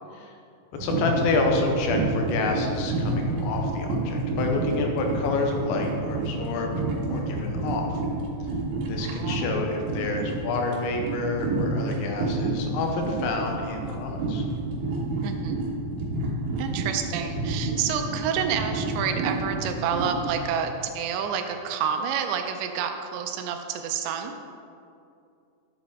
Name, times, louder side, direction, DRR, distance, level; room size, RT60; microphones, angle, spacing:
sound 1, 0.7-20.5, right 2 dB, 65° right, 2.5 m, -29 dB
voice 1, 0.8-6.7 7.1-8.0 8.9-14.4, left 3 dB, 85° left, 2 dB, 3.2 m, -28 dB
voice 2, 9.1-9.6 15.2-15.6 16.6-24.3, right 7 dB, 80° right, 6 dB, 2.8 m, -29 dB
10.5 x 7.9 x 3.6 m, 2.5 s
omnidirectional pair, 5.3 m